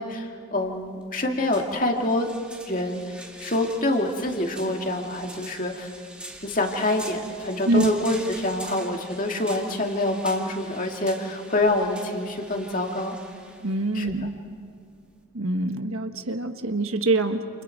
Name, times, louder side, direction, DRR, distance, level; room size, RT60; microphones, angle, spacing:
voice 1, 0.0-2.3 2.7-5.9 6.4-13.2 13.9-14.1, left 1 dB, 40° left, 2 dB, 2.3 m, -26 dB
sound 1, 0.6-15.2, right 1 dB, 5° right, 1.8 m, -44 dB
voice 2, 13.6-14.3 15.3-17.6, right 2 dB, 85° right, 7 dB, 1.5 m, -25 dB
29.0 x 29.0 x 4.6 m, 2.4 s
head